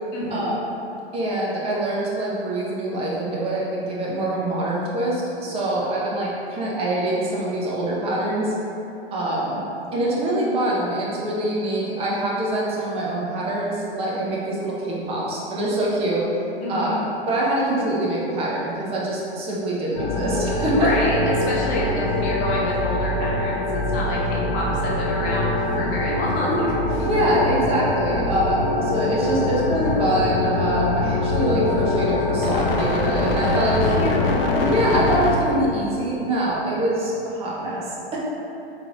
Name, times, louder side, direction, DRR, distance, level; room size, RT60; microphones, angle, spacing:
voice 1, 0.1-0.6 16.6-17.0 20.7-27.0 33.4-34.4, left 1 dB, 35° left, -5 dB, 0.9 m, -28 dB
voice 2, 1.1-8.5 9.1-9.6 9.9-16.2 16.7-17.0 17.3-20.9 27.0-33.9 34.6-37.9, right 1 dB, 20° right, -5 dB, 0.7 m, -24 dB
sound 1, 19.9-35.3, left 2 dB, 60° left, 0.6 m, -23 dB
4.8 x 3.1 x 2.4 m, 2.9 s
figure-of-eight pair, 110°, 32 cm